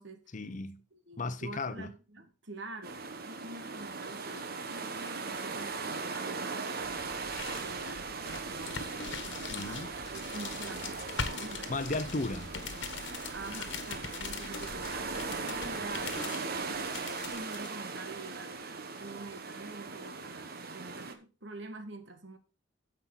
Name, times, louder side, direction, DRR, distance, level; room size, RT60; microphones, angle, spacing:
voice 1, 0.3-0.8 1.2-1.9 9.5-9.9 11.7-12.5, left 2 dB, 40° left, 0.8 m, -35 dB
voice 2, 0.9-9.8 10.1-11.0 11.2-11.7 13.3-18.6 19.0-22.4, right 2 dB, 70° right, 1.6 m, -46 dB
sound 1, 2.8-21.1, right 4 dB, 50° right, 1.1 m, -39 dB
sound 2, 6.8-17.7, left 5 dB, 65° left, 1.4 m, -42 dB
9.8 x 7.6 x 4.0 m
head